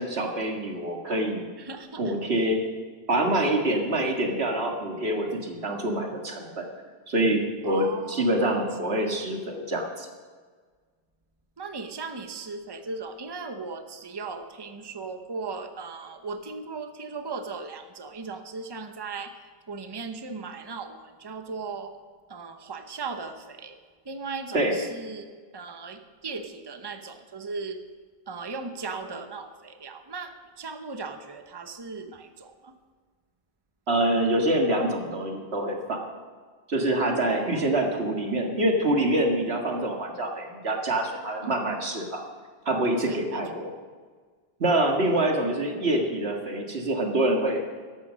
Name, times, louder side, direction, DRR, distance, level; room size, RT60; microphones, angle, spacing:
voice 1, 0.0-1.4 2.0-2.6 3.1-6.7 7.1-10.1 24.5-24.8 33.9-36.0 36.7-42.2 42.7-43.7 44.6-47.6, right 1 dB, 90° right, 2 dB, 2.1 m, -26 dB
voice 2, 1.6-2.2 7.6-8.5 11.6-19.4 19.7-22.0 22.3-23.8 24.0-25.3 25.5-27.8 28.3-32.8 37.2-37.9 41.4-41.6 43.0-43.7 45.0-45.2, right 4 dB, 25° right, 7 dB, 0.9 m, -37 dB
13.0 x 12.0 x 6.3 m, 1.5 s
omnidirectional pair, 1.0 m